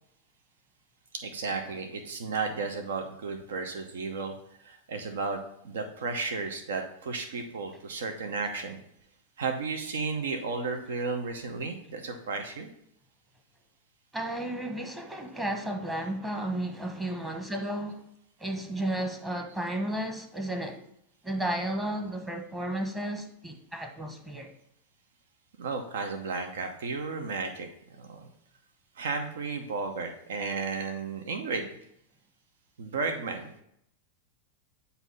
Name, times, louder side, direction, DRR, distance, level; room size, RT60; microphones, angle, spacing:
voice 1, 1.1-8.8 9.4-12.7 25.6-27.7 28.0-28.3 29.0-31.7 32.8-33.6, right 4 dB, 85° right, 0.8 m, -33 dB
voice 2, 14.1-18.0 18.4-20.8 21.2-24.5, right 1 dB, 15° right, 1.0 m, -33 dB
8.1 x 2.8 x 5.4 m
hypercardioid pair, 125°, 0 cm